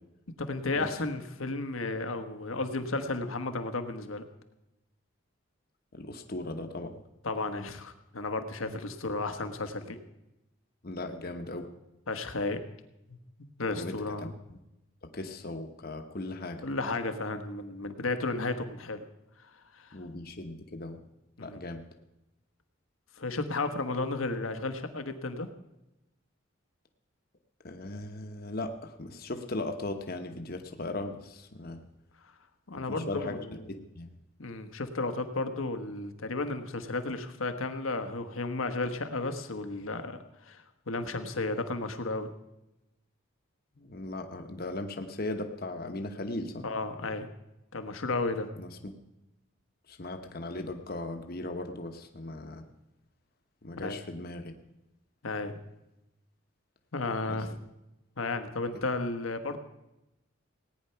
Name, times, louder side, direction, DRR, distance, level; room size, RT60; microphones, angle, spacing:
voice 1, 0.4-4.2 7.2-10.0 12.1-12.6 13.1-13.2 13.6-14.3 16.6-19.0 19.4-20.0 21.4-21.6 23.2-25.5 32.7-33.7 34.4-42.3 46.6-47.3 47.7-48.5 53.8-54.0 55.2-55.6 56.9-57.5 58.2-59.6, left 3 dB, 80° left, 8 dB, 1.3 m, -33 dB
voice 2, 5.9-7.0 8.7-8.8 10.8-11.7 13.7-14.0 14.5-14.6 15.0-16.6 19.9-21.0 21.4-21.8 27.6-31.8 32.7-33.4 33.7-34.1 43.8-46.7 48.6-48.9 49.9-52.6 53.6-54.5 57.3-57.4, left 2 dB, 45° left, 6 dB, 1.0 m, -38 dB
18.0 x 9.7 x 5.7 m, 0.94 s
head